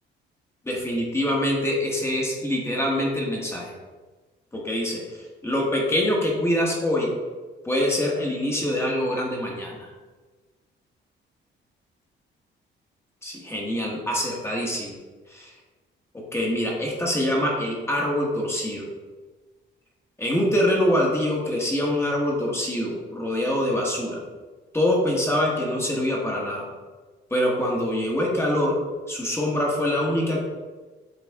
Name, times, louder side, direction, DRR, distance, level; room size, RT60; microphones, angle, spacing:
voice 1, 0.6-3.7 4.5-7.1 7.6-9.9 13.2-15.0 15.3-15.5 16.3-18.9 20.2-24.2 24.7-26.6 27.3-28.8 29.1-30.4, left 1 dB, 15° left, -3 dB, 1.2 m, -24 dB
7.9 x 3.4 x 3.5 m, 1.3 s
cardioid pair, 125°, 20 cm